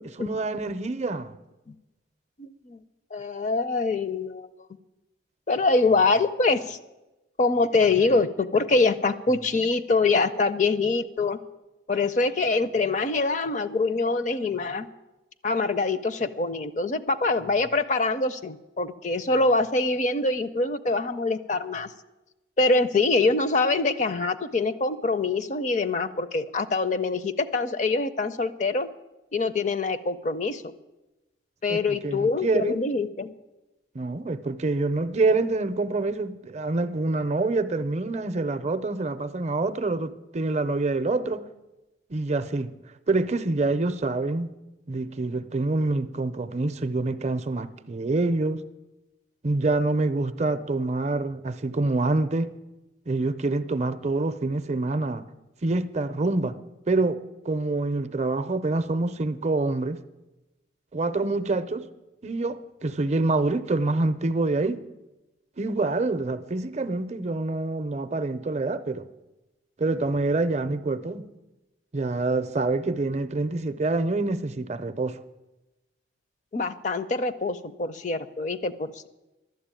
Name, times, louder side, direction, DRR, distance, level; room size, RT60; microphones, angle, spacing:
voice 1, 0.2-1.4 31.7-32.8 33.9-41.4 42.1-42.7 43.1-44.5 44.9-48.6 49.4-52.5 53.1-55.3 55.6-56.6 56.9-60.0 60.9-61.9 62.2-64.8 65.6-69.1 69.8-71.3 71.9-75.2, right 2 dB, 35° right, 0.5 m, -26 dB
voice 2, 2.4-2.8 3.1-4.5 5.5-6.8 7.4-11.4 11.9-14.9 15.4-21.9 22.6-28.9 29.3-30.7 31.6-33.3 76.5-79.1, left 3 dB, 40° left, 0.5 m, -24 dB
12.0 x 7.7 x 8.9 m
head